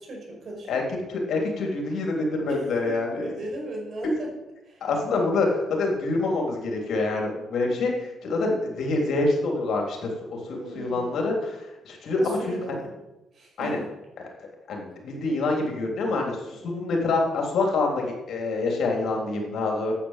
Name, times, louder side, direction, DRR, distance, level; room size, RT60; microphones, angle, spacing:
voice 1, 0.1-0.9 2.5-2.6 3.2-4.3 4.6-4.8 10.5-11.3 12.2-12.9 13.3-13.8 16.5-16.9 18.9-20.0, right 1 dB, 55° right, 0 dB, 5.5 m, -38 dB
voice 2, 1.1-3.3 4.0-4.1 4.8-12.8 13.6-13.8 14.4-19.9, left 3 dB, 65° left, 1 dB, 3.4 m, -26 dB
10.0 x 8.5 x 7.5 m, 1.0 s
cardioid pair, 90°, 0 cm